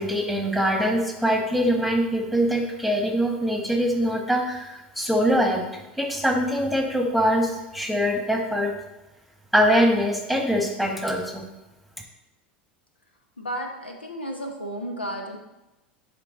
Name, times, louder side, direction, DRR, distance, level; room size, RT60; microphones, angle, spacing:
voice 1, 0.0-5.6 6.0-8.7 9.5-11.4, equal, ahead, 2 dB, 1.4 m, -23 dB
voice 2, 13.4-15.4, equal, 85° left, 2 dB, 0.9 m, -33 dB
9.9 x 3.8 x 3.9 m, 0.99 s
figure-of-eight pair, 80°, 5 cm